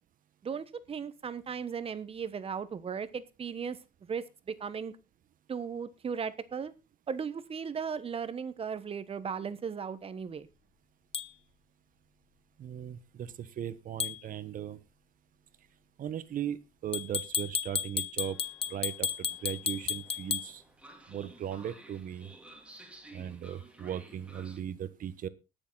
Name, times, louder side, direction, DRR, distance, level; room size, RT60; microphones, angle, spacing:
voice 1, 0.4-3.8 4.1-4.9 5.5-6.7 7.1-10.5, right 6 dB, 35° right, 14 dB, 1.2 m, -36 dB
sound 1, 11.1-11.3 14.0-14.2 16.9-20.5, left 7 dB, 35° left, 0.9 m, -33 dB
voice 2, 12.6-14.8 16.0-18.4 18.7-20.6 21.1-22.3 23.1-25.3, right 10 dB, 55° right, 14 dB, 1.3 m, -38 dB
Train, 18.2-24.6, right 1 dB, 5° right, 2.4 m, -54 dB
19.5 x 7.1 x 4.1 m, 0.29 s
cardioid pair, 110°, 17 cm